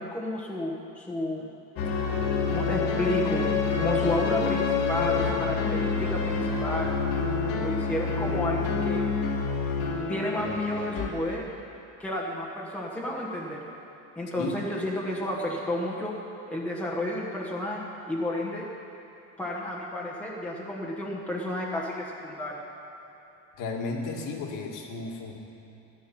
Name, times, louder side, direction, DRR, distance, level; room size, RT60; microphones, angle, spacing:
voice 1, 0.0-1.5 2.5-3.5 3.8-6.9 7.6-9.0 10.1-11.5 12.0-13.6 14.2-16.1 16.5-17.8 18.1-18.7 19.4-22.6, left 1 dB, 5° left, -3 dB, 1.2 m, -31 dB
sound 1, 1.8-11.1, left 5 dB, 75° left, 2.2 m, -27 dB
voice 2, 23.6-25.3, left 3 dB, 55° left, 1 dB, 1.9 m, -33 dB
14.0 x 12.5 x 5.8 m, 2.9 s
cardioid pair, 155°, 37 cm